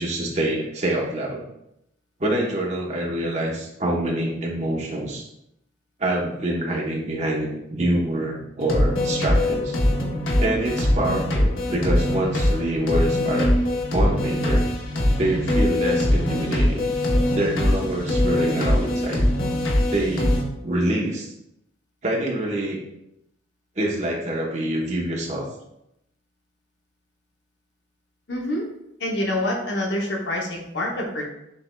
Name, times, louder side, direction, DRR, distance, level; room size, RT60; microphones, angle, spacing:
voice 1, 0.0-1.4 2.2-5.3 6.0-9.7 10.4-13.5 13.9-14.7 15.2-16.9 17.3-19.3 19.9-21.3 22.0-22.8 23.8-25.5, right 1 dB, 35° right, -2 dB, 0.9 m, -26 dB
sound 1, 8.6-20.4, left 1 dB, 90° left, 0.9 m, -22 dB
voice 2, 28.3-28.6 29.0-31.2, left 1 dB, 60° left, 0 dB, 0.7 m, -26 dB
6.5 x 3.3 x 2.2 m, 0.82 s
head